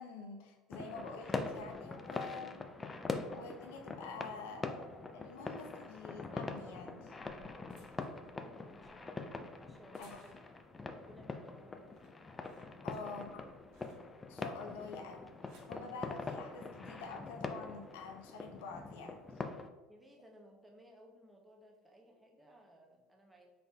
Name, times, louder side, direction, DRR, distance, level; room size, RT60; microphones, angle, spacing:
voice 1, 0.0-2.6 3.3-7.1 10.0-10.2 12.8-13.4 14.3-15.3 15.7-19.2, left 4 dB, 65° left, 3 dB, 0.6 m, -47 dB
sound 1, 0.7-19.7, left 3 dB, 20° left, 0.3 m, -44 dB
sound 2, 7.0-10.7 11.2-11.5 11.8-14.4 15.1-15.8 16.7-17.0, right 4 dB, 65° right, 1.5 m, -67 dB
voice 2, 8.3-10.5 10.8-12.1 12.8-13.4 19.9-23.5, equal, 10° right, 0 dB, 0.8 m, -61 dB
3.9 x 3.7 x 2.3 m, 1.2 s
figure-of-eight pair, 70°, 0 cm